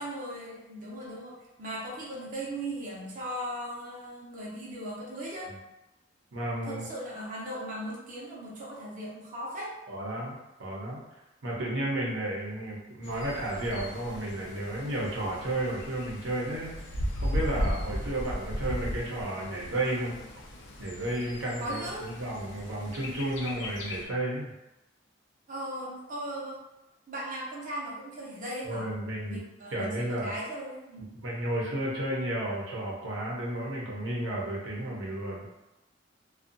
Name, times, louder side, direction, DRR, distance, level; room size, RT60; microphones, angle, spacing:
voice 1, 0.0-5.5 6.6-9.7 21.6-22.1 25.5-26.6 27.1-28.8 29.3-31.1, right 1 dB, 45° right, -5 dB, 0.6 m, -38 dB
voice 2, 6.3-6.9 9.9-11.0 11.4-16.8 17.2-20.2 20.8-24.5 28.6-29.4 29.7-30.3 31.0-35.4, right 1 dB, 85° right, -4 dB, 0.7 m, -32 dB
Bird, 13.0-24.1, equal, 65° left, 0.4 m, -36 dB
2.6 x 2.3 x 2.5 m, 0.95 s
head